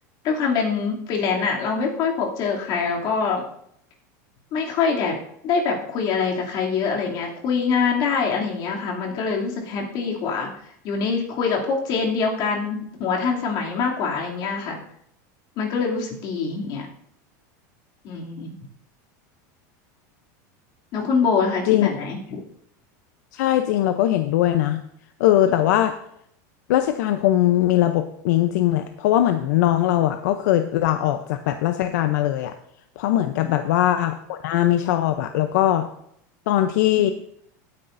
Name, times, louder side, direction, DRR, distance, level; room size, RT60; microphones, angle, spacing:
voice 1, 0.2-3.4 4.5-5.2 5.4-10.5 10.8-14.8 15.6-16.9 18.0-18.5 20.9-22.4 33.4-33.6, left 5 dB, 45° left, -1 dB, 2.8 m, -24 dB
voice 2, 23.3-24.8 25.2-25.9 26.7-32.5 33.0-35.8 36.5-37.1, left 13 dB, 75° left, 8 dB, 0.7 m, -20 dB
16.5 x 9.7 x 2.6 m, 0.71 s
supercardioid pair, 150°, 10 cm